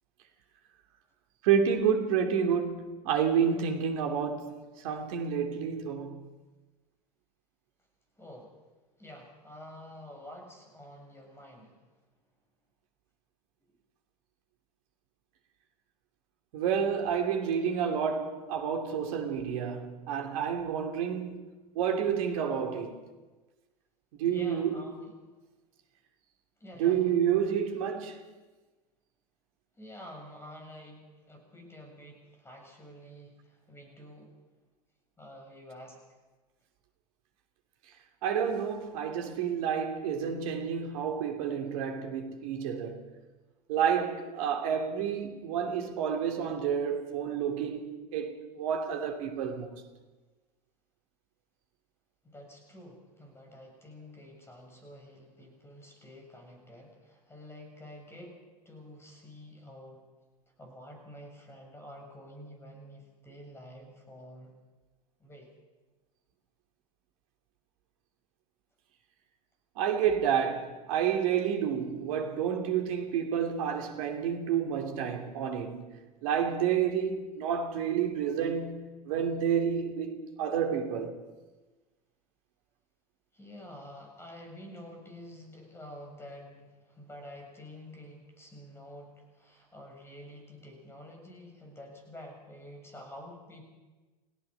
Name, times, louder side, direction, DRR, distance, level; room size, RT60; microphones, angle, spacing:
voice 1, 1.4-4.6 4.8-6.3 16.5-21.4 21.7-23.0 24.2-24.8 26.8-28.2 38.2-43.0 43.7-49.8 69.8-75.9 76.2-81.2, right 8 dB, 55° right, 3.0 m, -29 dB
voice 2, 8.2-8.5 9.0-11.8 24.3-25.1 26.6-27.1 29.8-31.0 31.3-34.4 35.2-36.0 52.2-60.0 60.6-64.5 65.2-65.5 83.3-93.6, left 1 dB, 10° left, 7.5 m, -49 dB
30.0 x 17.0 x 5.6 m
figure-of-eight pair, 80°, 21 cm